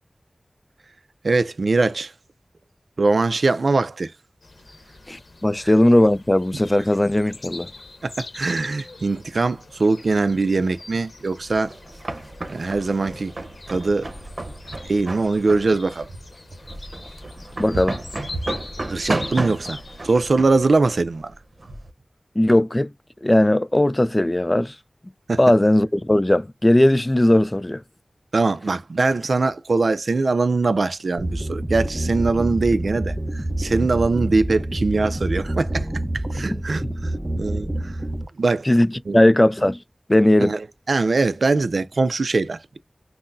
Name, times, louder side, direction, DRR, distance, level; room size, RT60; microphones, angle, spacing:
voice 1, 1.2-2.1 3.0-4.1 8.0-11.7 12.5-13.3 13.7-14.1 14.8-16.1 18.9-21.3 25.3-25.4 28.3-35.9 36.1-37.9 38.4-38.7 39.1-39.2 40.4-42.8, right 3 dB, 85° right, 0.3 m, -22 dB
sound 1, 4.4-20.2, left 2 dB, 75° left, 0.7 m, -42 dB
voice 2, 5.1-7.7 17.6-18.0 22.4-22.9 23.2-24.7 25.4-27.8 38.7-39.8 40.1-40.5, left 1 dB, 25° left, 0.3 m, -18 dB
sound 2, 11.5-21.9, right 2 dB, 65° right, 0.8 m, -32 dB
sound 3, 31.2-38.2, right 1 dB, 25° right, 0.6 m, -27 dB
5.6 x 2.0 x 2.5 m
wide cardioid pair, 55°, 0 cm